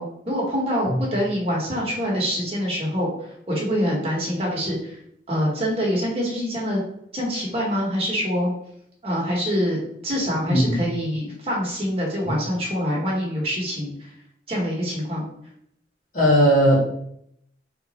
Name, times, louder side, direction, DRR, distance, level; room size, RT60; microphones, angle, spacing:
voice 1, 0.0-3.1 3.5-5.0 5.3-6.8 7.1-8.5 9.0-14.1 14.5-15.3, equal, 35° right, -3 dB, 1.4 m, -25 dB
voice 2, 10.5-10.8 16.1-16.8, equal, 45° left, -5 dB, 1.8 m, -17 dB
3.8 x 3.1 x 4.2 m, 0.72 s
head